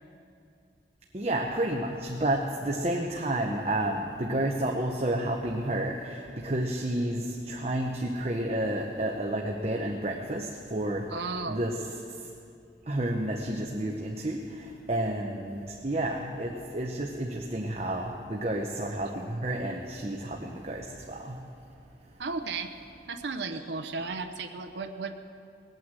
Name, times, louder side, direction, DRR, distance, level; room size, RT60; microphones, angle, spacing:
voice 1, 1.1-11.0 11.5-11.8 12.9-21.4, right 1 dB, 35° right, 0 dB, 1.0 m, -30 dB
voice 2, 11.1-11.6 22.2-22.7 23.1-25.1, right 4 dB, 75° right, 7 dB, 0.8 m, -34 dB
19.5 x 9.4 x 7.6 m, 2.5 s
head